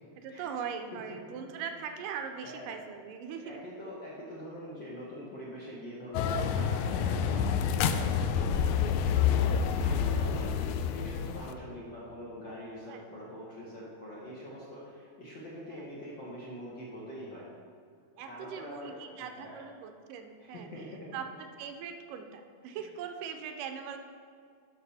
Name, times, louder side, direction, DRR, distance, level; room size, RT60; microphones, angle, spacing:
voice 1, 0.2-3.6 8.1-8.4 12.9-13.1 15.7-15.9 18.2-20.7 21.1-21.3 21.6-24.0, right 7 dB, 85° right, 6 dB, 2.2 m, -40 dB
voice 2, 0.9-1.8 2.4-2.8 3.4-7.5 7.9-9.0 9.3-17.5 18.2-19.6 20.4-21.2, equal, 55° left, -7 dB, 1.3 m, -44 dB
sound 1, 6.1-11.5, left 7 dB, 90° left, 1.6 m, -28 dB
11.5 x 6.1 x 4.2 m, 2.2 s
omnidirectional pair, 3.9 m